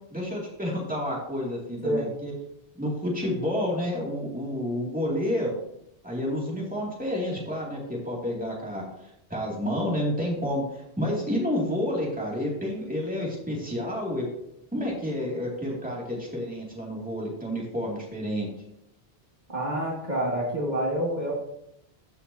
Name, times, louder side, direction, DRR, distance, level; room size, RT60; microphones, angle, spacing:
voice 1, 0.1-2.3 2.7-5.6 6.0-14.3 14.7-18.5, left 1 dB, 10° right, -4 dB, 2.3 m, -30 dB
voice 2, 19.5-21.3, right 1 dB, 45° right, -4 dB, 1.8 m, -27 dB
14.0 x 5.7 x 2.7 m, 0.79 s
omnidirectional pair, 1.1 m